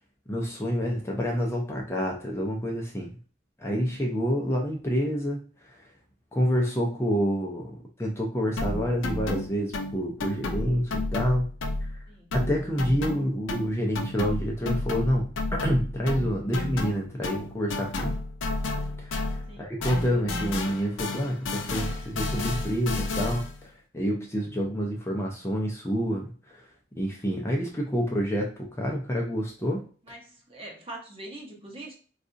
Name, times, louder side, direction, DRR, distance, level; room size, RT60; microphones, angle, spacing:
voice 1, 0.3-3.1 3.6-5.4 5.7-5.8 6.3-11.5 12.3-18.2 19.0-26.6 27.0-29.8, equal, 15° left, -1 dB, 0.5 m, -28 dB
sound 1, 8.6-12.0 12.3-19.6 19.8-23.6, left 2 dB, 85° left, 0.5 m, -32 dB
voice 2, 30.0-31.9, right 1 dB, 30° right, -1 dB, 0.9 m, -43 dB
4.0 x 2.4 x 2.5 m, 0.40 s
head